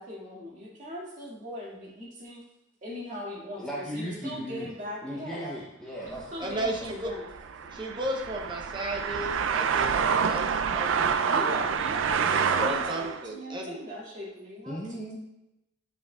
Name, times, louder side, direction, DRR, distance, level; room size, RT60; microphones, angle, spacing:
voice 1, 0.0-2.4 2.8-5.5 6.0-7.2 11.3-14.8, equal, 40° right, -5 dB, 2.2 m, -39 dB
voice 2, 3.6-4.7 5.0-6.9 14.7-15.2, equal, 5° left, -7 dB, 0.8 m, -37 dB
sound 1, 6.1-13.2, right 6 dB, 75° right, 0.4 m, -28 dB
voice 3, 6.4-7.1 7.7-11.3 12.2-13.8, right 1 dB, 25° right, 0 dB, 1.0 m, -34 dB
11.0 x 5.1 x 2.4 m, 0.90 s
head